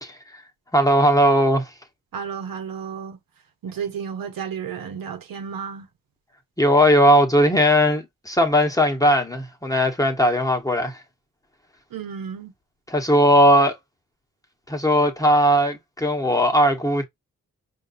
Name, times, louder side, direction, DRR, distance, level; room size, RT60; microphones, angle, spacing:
voice 1, 0.0-0.4 0.7-1.7 6.6-11.0 12.9-13.7 14.7-17.0, equal, 10° left, 1.3 m, -18 dB
voice 2, 2.1-3.2 3.6-5.9 11.9-12.5, right 7 dB, 85° right, 1.1 m, -32 dB
5.1 x 2.6 x 2.6 m
cardioid pair, 65°, 34 cm